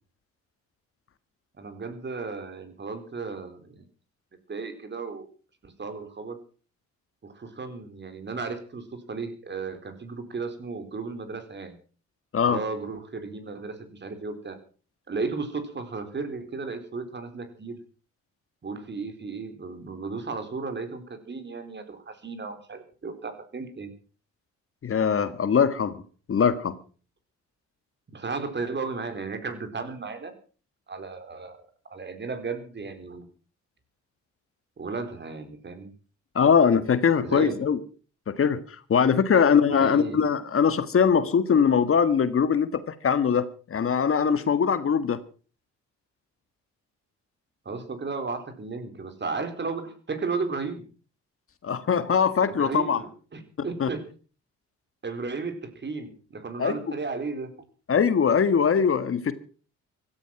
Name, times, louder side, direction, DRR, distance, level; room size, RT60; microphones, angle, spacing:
voice 1, 1.6-3.8 4.5-5.3 5.6-6.4 7.2-11.8 12.4-14.6 15.1-17.8 18.6-23.9 28.1-30.3 30.9-31.6 31.9-33.3 34.8-35.9 37.2-37.6 39.3-40.2 47.6-50.8 52.5-54.1 55.0-57.5, right 4 dB, 35° right, 8 dB, 4.2 m, -34 dB
voice 2, 24.8-26.0 26.3-26.8 36.3-37.8 38.3-45.2 51.6-53.0 53.8-53.9 56.6-56.8 57.9-59.3, left 6 dB, 45° left, 12 dB, 1.6 m, -22 dB
16.5 x 13.0 x 5.9 m, 0.40 s
cardioid pair, 90°, 30 cm